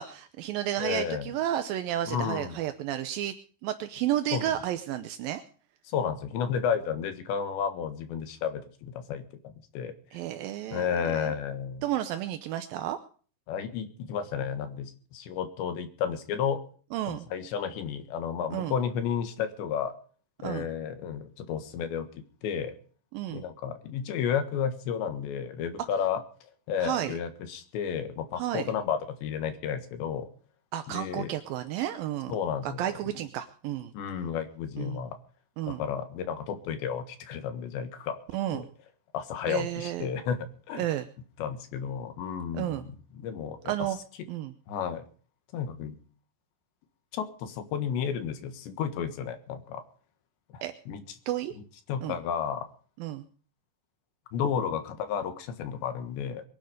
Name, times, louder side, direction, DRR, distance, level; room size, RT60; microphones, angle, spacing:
voice 1, 0.0-3.3 3.6-5.4 10.1-10.9 11.1-11.3 11.8-13.0 16.9-17.3 18.5-18.7 20.4-20.7 23.1-23.4 26.8-27.1 28.4-28.7 30.7-32.3 32.6-33.9 34.8-35.0 35.6-35.8 38.3-38.7 39.5-40.1 40.8-41.1 42.5-42.8 43.7-44.0 44.3-44.5 50.6-50.7 51.3-51.5 52.0-52.2 53.0-53.3, right 12 dB, 75° right, 9 dB, 2.1 m, -32 dB
voice 2, 0.8-1.3 2.1-2.6 4.3-4.5 5.9-10.0 10.7-11.9 13.5-16.6 17.1-19.9 20.4-22.7 23.3-26.2 26.7-30.3 30.9-31.3 32.3-33.0 33.9-35.2 35.7-38.2 38.5-38.7 39.1-40.9 41.4-43.7 44.7-45.0 45.5-46.0 47.1-49.8 50.5-51.0 51.9-52.7 54.3-56.4, left 7 dB, 80° left, 8 dB, 3.8 m, -32 dB
22.5 x 10.5 x 5.0 m, 0.43 s
omnidirectional pair, 5.1 m